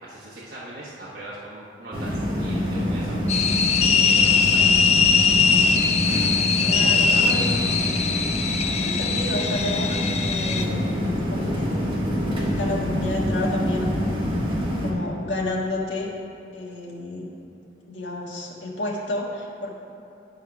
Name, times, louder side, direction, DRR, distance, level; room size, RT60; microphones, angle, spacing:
voice 1, 0.0-3.2 3.6-4.9 6.5-7.7, right 1 dB, 50° right, -8 dB, 1.1 m, -38 dB
sound 1, 1.9-14.9, equal, 30° right, 1.4 m, -26 dB
sound 2, 3.3-10.6, left 5 dB, 35° left, 0.4 m, -21 dB
voice 2, 6.6-7.6 8.7-11.7 12.4-14.2 14.8-16.1 16.5-17.3 17.9-19.7, left 2 dB, 80° left, -2 dB, 1.5 m, -31 dB
10.0 x 4.7 x 5.9 m, 2.7 s
head